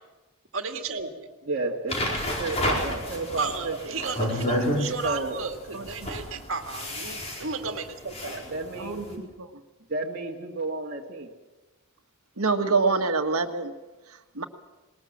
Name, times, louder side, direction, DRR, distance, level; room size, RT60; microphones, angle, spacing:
voice 1, 0.5-1.4 3.4-8.4, right 4 dB, 65° right, 5 dB, 2.0 m, -34 dB
voice 2, 1.5-4.3 5.0-5.4 8.5-9.2 9.9-11.3, right 2 dB, 45° right, -3 dB, 1.9 m, -32 dB
sound 1, 1.9-9.1, left 1 dB, 30° left, 4.6 m, -30 dB
voice 3, 5.7-6.1 8.8-9.5 12.4-13.7 14.3-14.4, right 4 dB, 90° right, 7 dB, 1.6 m, -26 dB
20.0 x 19.5 x 7.4 m, 1.2 s
head